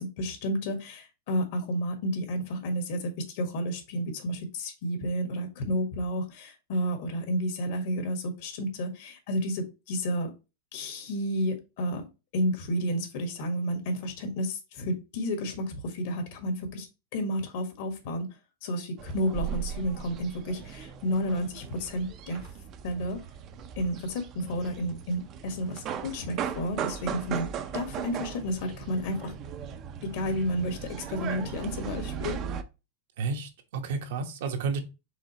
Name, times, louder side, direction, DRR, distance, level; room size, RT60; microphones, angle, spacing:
voice 1, 0.0-10.3 10.7-12.0 12.3-16.9 17.1-18.3 18.6-22.4 22.8-23.2 23.8-27.5 27.7-29.3 30.1-32.4, equal, 60° left, 1.5 m, -31 dB
sound 1, 19.0-32.6, right 8 dB, 35° right, 0.5 m, -38 dB
voice 2, 33.2-34.8, right 4 dB, 70° right, 1.0 m, -31 dB
5.0 x 3.6 x 2.9 m
supercardioid pair, 150°, 0 cm